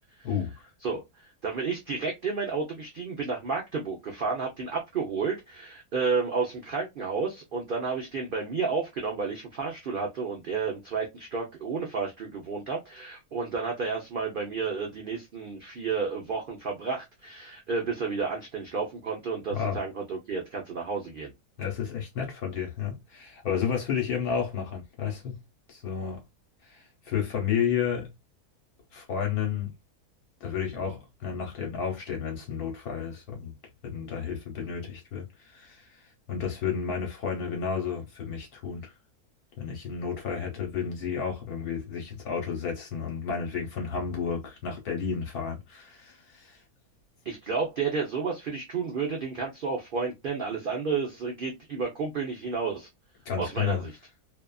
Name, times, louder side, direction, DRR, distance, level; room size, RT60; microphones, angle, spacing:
voice 1, 1.4-21.3 47.2-52.9 53.4-53.9, right 5 dB, 55° right, 0.6 m, -31 dB
voice 2, 21.6-25.4 25.7-26.2 26.7-28.1 28.9-29.7 30.4-33.5 33.8-35.8 36.3-38.8 39.6-46.6 53.3-53.8, left 7 dB, 75° left, 1.3 m, -31 dB
2.8 x 2.4 x 2.2 m
omnidirectional pair, 1.6 m